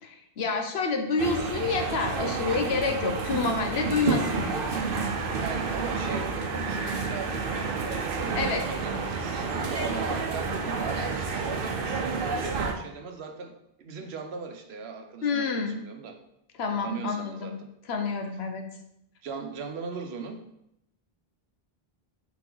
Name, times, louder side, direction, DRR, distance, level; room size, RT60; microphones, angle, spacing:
voice 1, 0.0-4.5 8.3-8.7 15.2-15.8 16.6-17.5 17.9-18.7, left 4 dB, 80° left, 5 dB, 1.1 m, -28 dB
sound 1, 1.2-12.7, right 4 dB, 65° right, 0.9 m, -30 dB
voice 2, 5.4-16.2 16.8-17.7 19.2-20.4, right 5 dB, 85° right, 5 dB, 1.0 m, -39 dB
6.1 x 4.3 x 3.8 m, 0.78 s
omnidirectional pair, 1.0 m